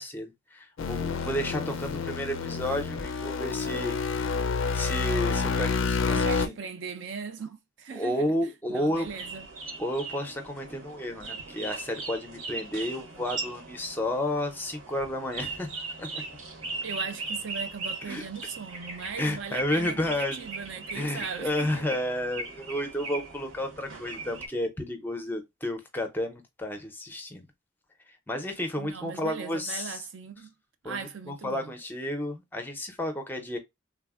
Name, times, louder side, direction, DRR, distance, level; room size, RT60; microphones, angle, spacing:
voice 1, 0.0-4.0 4.7-6.5 7.9-9.1 9.8-16.2 18.0-18.2 19.2-20.5 20.9-27.5 28.1-30.0 30.8-33.6, left 1 dB, 10° left, 0.5 m, -32 dB
sound 1, 0.8-6.5, left 4 dB, 65° left, 0.4 m, -29 dB
voice 2, 6.1-9.5 16.8-21.9 28.8-30.5 30.8-31.7, right 5 dB, 60° right, 0.4 m, -39 dB
sound 2, 8.9-24.5, right 3 dB, 75° right, 0.9 m, -39 dB
3.4 x 2.0 x 2.3 m
head